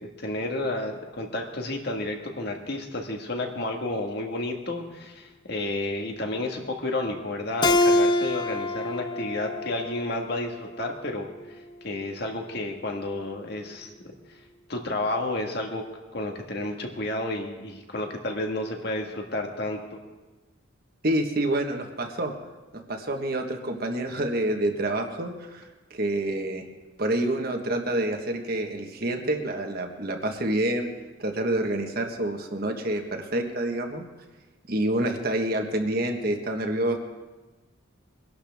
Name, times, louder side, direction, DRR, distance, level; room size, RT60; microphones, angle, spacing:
voice 1, 0.2-11.3 11.8-13.9 14.7-15.8 16.1-20.0, left 2 dB, 50° left, 3 dB, 1.7 m, -31 dB
Keyboard (musical), 7.6-10.9, left 1 dB, 20° left, 0.4 m, -25 dB
voice 2, 21.0-22.3 22.7-26.6 27.0-30.9 31.2-34.1 34.7-37.0, right 1 dB, 45° right, 4 dB, 1.4 m, -27 dB
22.5 x 11.5 x 3.6 m, 1.2 s
head